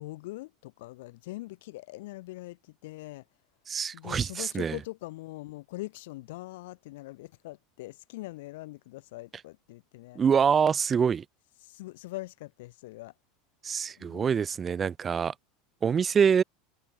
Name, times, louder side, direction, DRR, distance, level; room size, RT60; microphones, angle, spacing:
voice 1, 0.0-3.2 3.9-10.2 11.6-13.1 14.0-14.4, left 19 dB, 70° left, 0.6 m, -42 dB
voice 2, 3.7-4.8 10.2-11.2 13.6-15.3 15.8-16.4, right 7 dB, 30° right, 0.3 m, -25 dB
hypercardioid pair, 90°, 0 cm